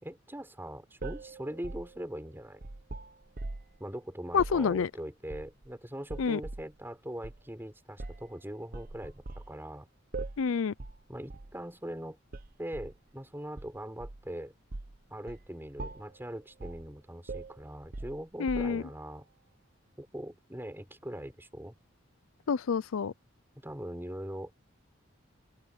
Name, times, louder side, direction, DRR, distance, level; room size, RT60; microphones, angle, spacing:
voice 1, 0.0-2.6 3.8-9.9 11.1-12.2 12.6-14.5 15.1-19.3 20.0-21.7 23.6-24.5, right 1 dB, 10° right, 4.9 m, -41 dB
sound 1, 1.0-3.8 4.3-4.6 5.3-5.7 6.1-6.7 7.2-7.4 8.0-8.3 8.7-9.5 10.1-10.5 10.8-11.0 11.3-11.5 12.3-13.0 13.6-14.3 14.7-15.0 15.3-15.5 15.8-16.2 16.6-16.9 17.3-18.9, right 2 dB, 45° right, 0.9 m, -41 dB
voice 2, 4.3-4.9 6.2-6.4 10.4-10.7 18.4-18.8 22.5-23.1, left 6 dB, 85° left, 0.5 m, -28 dB
open air
head